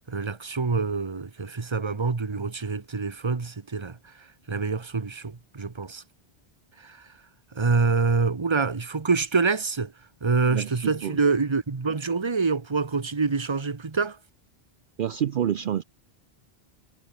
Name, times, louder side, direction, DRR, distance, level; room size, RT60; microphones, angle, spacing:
voice 1, 0.1-6.0 6.8-7.1 7.5-9.9 10.2-14.2, right 4 dB, 30° right, 1.1 m, -26 dB
voice 2, 10.5-11.2 15.0-15.8, right 10 dB, 60° right, 0.8 m, -28 dB
omnidirectional pair, 1.0 m